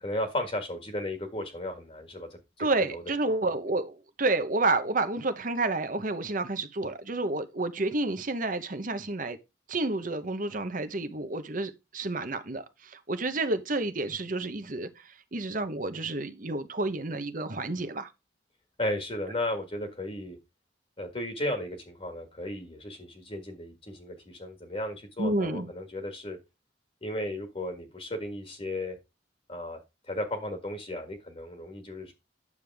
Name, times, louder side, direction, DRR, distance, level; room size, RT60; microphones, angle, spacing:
voice 1, 0.0-2.3 2.6-2.7 2.9-3.4 18.8-20.4 21.0-26.4 27.0-28.9 29.5-29.8 30.1-32.1, left 1 dB, 30° left, 1.7 m, -35 dB
voice 2, 2.6-9.4 9.7-18.1 25.2-25.7, right 2 dB, 45° right, 1.0 m, -30 dB
9.6 x 6.9 x 3.5 m
head